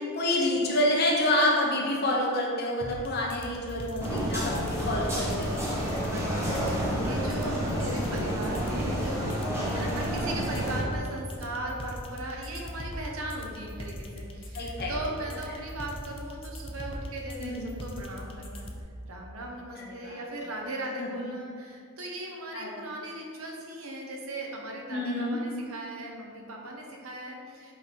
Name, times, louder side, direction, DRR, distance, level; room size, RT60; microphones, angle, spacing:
voice 1, 0.1-5.6 9.7-9.9 14.5-14.9 17.4-17.8 20.0-20.1 21.0-21.1 22.5-22.8 24.9-25.4, left 1 dB, 45° left, -2 dB, 1.0 m, -28 dB
sound 1, 2.8-18.8, equal, 25° left, 0.5 m, -40 dB
sound 2, 4.0-10.8, equal, 10° right, 1.2 m, -30 dB
voice 2, 6.0-18.7 19.1-27.7, right 1 dB, 70° right, 0 dB, 0.9 m, -38 dB
5.6 x 3.9 x 4.5 m, 2.3 s
head